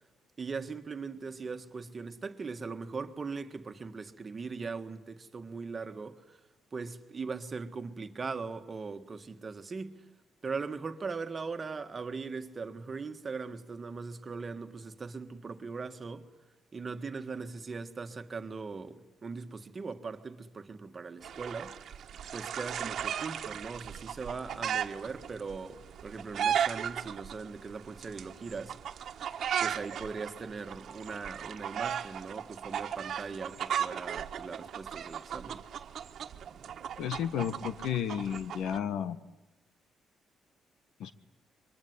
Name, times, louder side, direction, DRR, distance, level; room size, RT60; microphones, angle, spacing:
voice 1, 0.4-6.4 6.7-10.0 10.4-16.3 16.7-21.8 22.3-29.1 29.6-35.6, right 4 dB, 35° right, 1.8 m, -40 dB
sound 1, 21.2-38.8, right 9 dB, 65° right, 1.5 m, -37 dB
voice 2, 37.0-39.2 41.0-41.1, left 9 dB, 80° left, 1.3 m, -32 dB
26.0 x 23.5 x 9.7 m
cardioid pair, 90°, 0 cm